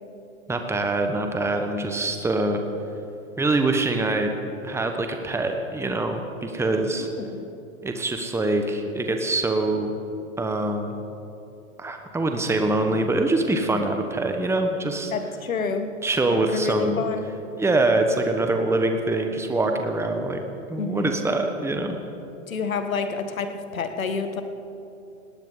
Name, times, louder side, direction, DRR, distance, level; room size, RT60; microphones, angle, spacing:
voice 1, 0.5-2.6 3.4-4.3 4.6-7.1 7.8-9.9 10.4-11.0 11.8-15.1 16.0-17.0 17.6-20.4 20.7-22.0, right 2 dB, 5° right, 5 dB, 1.3 m, -24 dB
voice 2, 15.1-15.9 16.3-17.3 20.8-21.2 22.5-24.4, left 5 dB, 80° left, 8 dB, 1.6 m, -28 dB
19.0 x 18.0 x 4.0 m, 2.8 s
hypercardioid pair, 105°, 40 cm